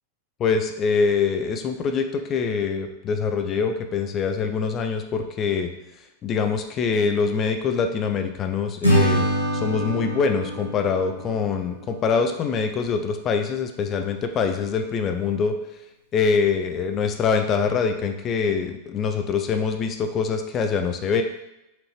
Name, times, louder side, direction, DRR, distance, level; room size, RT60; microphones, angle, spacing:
voice 1, 0.4-5.7 6.2-9.3 9.5-15.5 16.1-21.2, left 5 dB, 30° left, 6 dB, 0.4 m, -24 dB
Acoustic guitar / Strum, 8.8-12.1, right 1 dB, 90° right, 0.7 m, -25 dB
4.3 x 2.6 x 3.0 m, 0.92 s
figure-of-eight pair, 90°, 0 cm